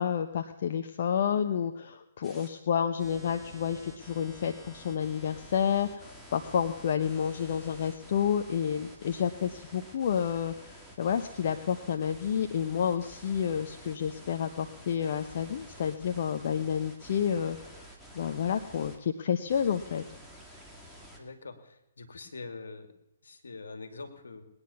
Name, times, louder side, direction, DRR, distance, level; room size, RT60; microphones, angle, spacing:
voice 1, 0.0-17.6 18.2-20.0, left 8 dB, 55° left, 7 dB, 0.9 m, -30 dB
sound 1, 2.2-2.5 3.0-19.0 19.5-21.2, equal, ahead, 2.5 m, -50 dB
voice 2, 21.2-22.9 23.2-24.5, left 3 dB, 75° left, 8 dB, 2.4 m, -44 dB
20.0 x 9.8 x 7.0 m, 0.89 s
figure-of-eight pair, 135°, 0 cm